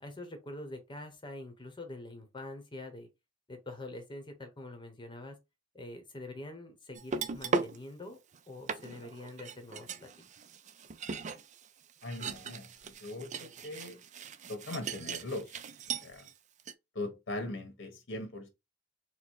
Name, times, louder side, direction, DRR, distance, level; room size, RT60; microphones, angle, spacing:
voice 1, 0.0-3.1 3.5-5.4 5.7-8.2 8.5-10.3, left 2 dB, 25° left, 0.9 m, -45 dB
sound 1, 7.0-7.8 8.3-8.4 8.7-16.3 16.6-16.7, right 5 dB, 40° right, 0.4 m, -38 dB
voice 2, 12.0-12.7 13.0-14.0 14.5-15.6 16.0-16.3 16.9-18.5, left 2 dB, 70° left, 1.2 m, -40 dB
4.3 x 2.1 x 4.5 m
head